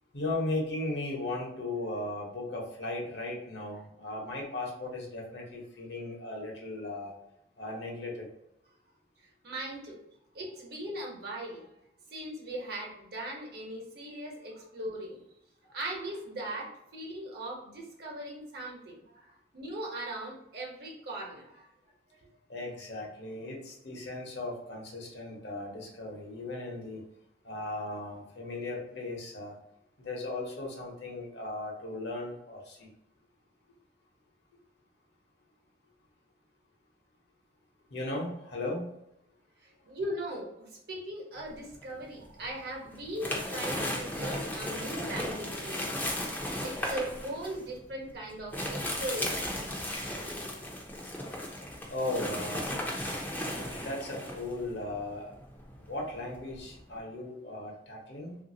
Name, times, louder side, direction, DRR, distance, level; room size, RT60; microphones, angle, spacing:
voice 1, 0.1-7.1 7.6-8.3 22.5-27.0 27.4-29.5 30.0-32.9 37.9-38.9 51.9-52.7 53.7-55.3 55.8-58.4, left 2 dB, 65° left, -1 dB, 0.9 m, -37 dB
voice 2, 9.4-10.0 10.3-11.7 12.1-15.2 15.7-21.7 39.6-46.0 46.6-49.4, right 1 dB, 60° right, -2 dB, 1.0 m, -39 dB
sound 1, 41.5-42.4 42.8-57.0, left 1 dB, 10° left, 0.5 m, -36 dB
3.2 x 2.6 x 2.7 m, 0.81 s
head